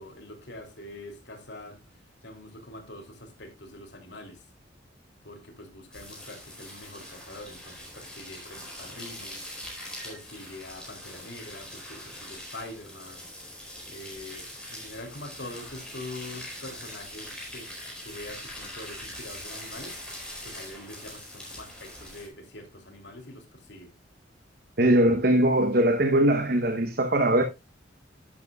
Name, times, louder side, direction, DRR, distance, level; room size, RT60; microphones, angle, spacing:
voice 1, 0.0-1.8 2.2-4.4 5.2-9.5 10.0-13.3 13.9-17.7 18.0-20.0 20.4-23.9, left 1 dB, 60° left, 3.0 m, -44 dB
sound 1, 5.9-22.3, left 1 dB, 5° left, 4.6 m, -42 dB
voice 2, 24.8-27.4, right 1 dB, 50° right, 1.0 m, -21 dB
11.5 x 11.0 x 2.3 m
head